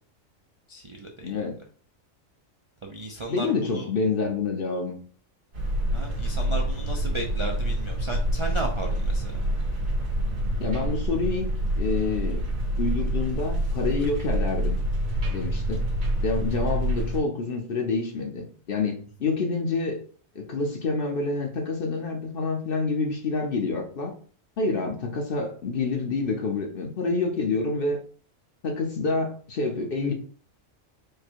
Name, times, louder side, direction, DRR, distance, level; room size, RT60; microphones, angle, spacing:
voice 1, 0.7-1.3 2.8-3.9 5.9-9.4, right 1 dB, 45° right, 1 dB, 0.4 m, -35 dB
voice 2, 1.2-1.6 3.3-5.0 10.6-12.4 12.8-14.8 15.3-15.9 16.2-20.0 20.3-24.1 24.6-28.0 28.6-30.1, left 3 dB, 50° left, 2 dB, 0.8 m, -27 dB
sound 1, 5.5-17.2, right 1 dB, 80° right, 2.0 m, -27 dB
4.9 x 2.2 x 4.5 m, 0.44 s
omnidirectional pair, 1.4 m